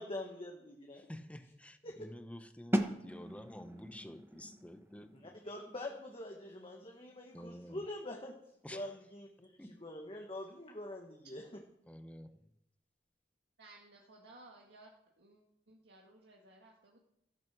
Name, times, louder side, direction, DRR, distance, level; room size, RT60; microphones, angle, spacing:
voice 1, 0.0-1.1 1.8-2.0 5.1-8.3 8.7-11.4, left 1 dB, 30° left, 1 dB, 1.5 m, -45 dB
voice 2, 0.9-5.4 7.3-7.8 8.6-8.8 9.6-9.8 11.9-12.4, equal, 10° left, 9 dB, 1.0 m, -50 dB
sound 1, 2.7-8.4, equal, 15° right, 1.1 m, -40 dB
voice 3, 13.6-14.9 15.2-17.0, right 2 dB, 75° right, -1 dB, 2.0 m, -58 dB
14.0 x 11.0 x 6.2 m, 0.78 s
head